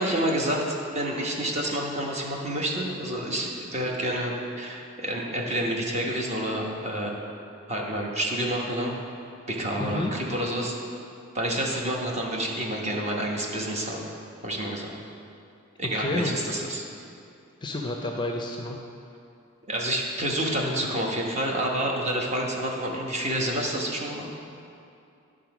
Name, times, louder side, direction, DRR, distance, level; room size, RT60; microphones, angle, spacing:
voice 1, 0.0-7.1 7.7-8.9 9.5-10.8 11.3-14.0 14.4-14.9 15.8-16.8 19.7-24.3, right 1 dB, 30° right, -1 dB, 1.0 m, -28 dB
voice 2, 9.8-10.1 15.9-16.4 17.6-18.8, left 2 dB, 20° left, 1 dB, 0.5 m, -30 dB
10.0 x 3.8 x 6.0 m, 2.5 s
head